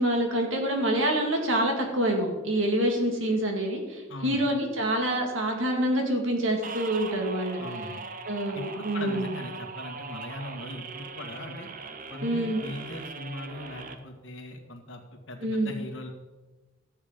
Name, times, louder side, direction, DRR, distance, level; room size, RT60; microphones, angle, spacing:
voice 1, 0.0-7.6 8.3-9.3 12.2-12.6 15.4-15.7, right 1 dB, 70° right, 2 dB, 2.2 m, -26 dB
voice 2, 4.1-4.4 7.6-8.0 8.5-11.7 12.1-16.1, left 1 dB, 65° left, 2 dB, 1.8 m, -40 dB
sound 1, 6.6-14.0, right 4 dB, 40° right, 0.8 m, -40 dB
13.0 x 7.4 x 5.2 m, 1.2 s
head